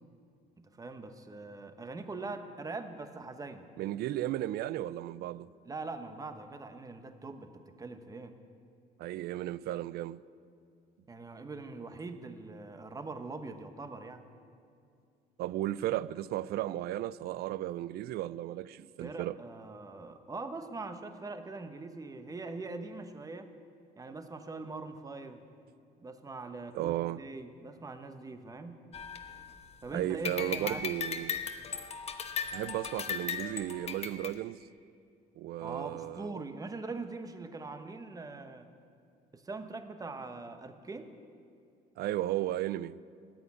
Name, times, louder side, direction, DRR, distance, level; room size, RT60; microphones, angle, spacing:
voice 1, 0.6-3.7 5.7-8.3 11.1-14.2 19.0-23.5 24.0-25.4 26.0-28.8 29.8-30.8 35.6-38.7 39.3-41.1, right 3 dB, 20° right, 1.1 m, -42 dB
voice 2, 3.8-5.5 9.0-10.2 15.4-19.3 26.7-27.2 29.9-31.4 32.5-34.6 35.4-36.4 42.0-43.0, right 14 dB, 70° right, 0.4 m, -34 dB
sound 1, 28.9-29.8 30.2-34.3, left 6 dB, 40° left, 1.0 m, -37 dB
14.5 x 8.5 x 9.8 m
cardioid pair, 110°, 17 cm